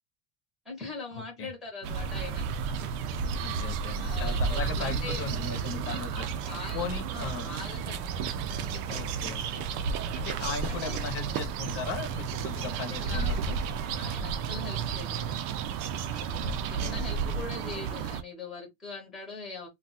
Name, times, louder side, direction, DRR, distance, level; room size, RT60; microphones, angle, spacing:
voice 1, 0.6-2.5 4.0-5.3 5.8-8.0 8.4-9.4 10.7-11.0 12.7-13.4 13.9-15.4 16.1-16.4 16.7-19.7, left 4 dB, ahead, 0.8 m, -42 dB
sound 1, 1.8-18.2, right 6 dB, 65° right, 0.6 m, -32 dB
voice 2, 3.4-6.3 6.7-7.5 8.9-9.6 10.1-13.6 16.4-17.1, left 5 dB, 30° left, 0.7 m, -37 dB
2.3 x 2.3 x 4.0 m
cardioid pair, 170°, 43 cm